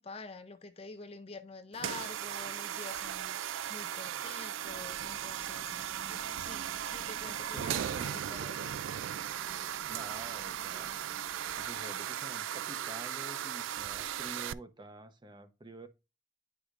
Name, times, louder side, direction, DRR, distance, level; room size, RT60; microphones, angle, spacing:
voice 1, 0.0-3.4 3.7-5.8 6.4-8.7, left 3 dB, 30° left, 0.5 m, -47 dB
sound 1, 1.7-14.5, right 10 dB, 75° right, 0.3 m, -37 dB
sound 2, 4.6-11.6, right 1 dB, 50° right, 0.9 m, -56 dB
voice 2, 7.4-8.3 9.9-11.0 11.6-15.9, right 2 dB, 20° right, 0.7 m, -48 dB
10.0 x 4.9 x 2.4 m
head